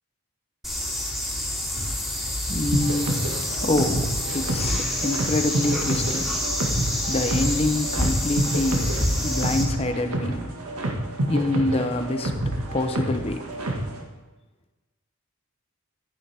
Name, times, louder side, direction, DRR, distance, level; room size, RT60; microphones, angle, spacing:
sound 1, 0.6-9.6, left 1 dB, ahead, 2.4 m, -27 dB
voice 1, 2.5-6.3 7.1-10.5 11.3-13.5, left 2 dB, 25° left, 7 dB, 0.8 m, -26 dB
sound 2, 2.7-14.0, right 1 dB, 80° right, 1.8 m, -28 dB
12.0 x 10.5 x 3.5 m, 1.2 s
head